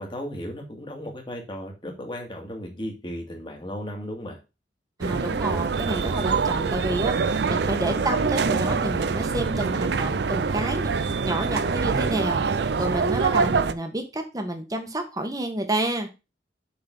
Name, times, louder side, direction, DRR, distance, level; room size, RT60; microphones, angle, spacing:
voice 1, 0.0-4.4, equal, 30° left, 1 dB, 2.1 m, -35 dB
voice 2, 5.0-16.1, right 1 dB, 20° right, 4 dB, 1.3 m, -29 dB
sound 1, 5.0-13.7, right 5 dB, 70° right, 0.5 m, -25 dB
6.9 x 4.0 x 5.3 m, 0.27 s
head